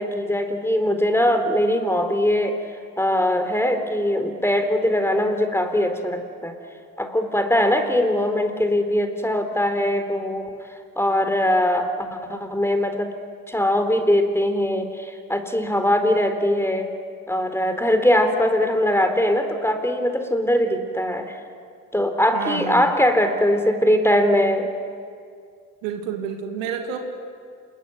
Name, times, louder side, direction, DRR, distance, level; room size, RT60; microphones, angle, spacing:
voice 1, 0.0-2.6 3.0-6.6 7.0-10.5 11.0-13.1 13.5-16.9 17.3-21.4 21.9-24.7, left 1 dB, 5° left, 7 dB, 4.2 m, -21 dB
voice 2, 22.3-22.9 25.8-27.0, right 8 dB, 85° right, 4 dB, 2.5 m, -29 dB
28.0 x 21.5 x 9.4 m, 2.2 s
hypercardioid pair, 50°, 38 cm